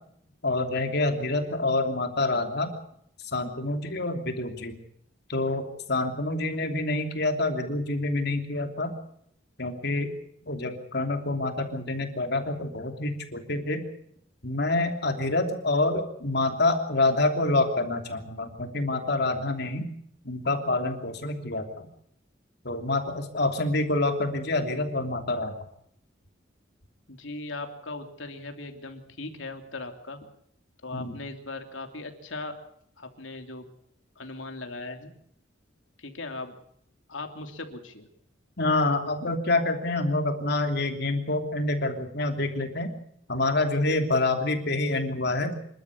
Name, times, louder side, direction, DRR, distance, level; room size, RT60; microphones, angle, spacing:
voice 1, 0.4-2.7 3.2-4.8 5.3-5.6 5.9-8.9 9.6-10.1 10.4-13.8 14.4-19.9 20.2-21.9 22.6-25.5 30.9-31.2 38.6-42.9 43.3-45.6, left 2 dB, 55° left, 5 dB, 3.1 m, -27 dB
voice 2, 27.1-30.2 30.8-32.5 33.0-33.7 34.2-35.1 36.0-36.5 37.1-38.1, left 2 dB, 80° left, 5 dB, 3.1 m, -38 dB
27.0 x 12.5 x 8.5 m, 0.71 s
head